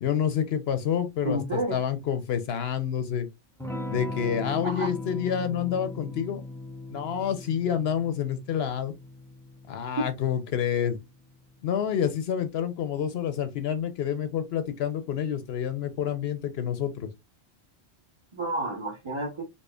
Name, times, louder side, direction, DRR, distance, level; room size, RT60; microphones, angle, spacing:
voice 1, 0.0-3.3 3.9-6.4 6.9-8.9 9.7-11.0 11.6-17.1, left 8 dB, 70° left, 0.8 m, -28 dB
voice 2, 1.2-1.8 4.6-4.9 10.0-10.1 18.3-19.4, right 1 dB, 30° right, 1.0 m, -30 dB
Electric guitar / Strum, 3.6-11.9, left 2 dB, 5° left, 0.4 m, -39 dB
4.2 x 2.7 x 2.3 m
omnidirectional pair, 1.1 m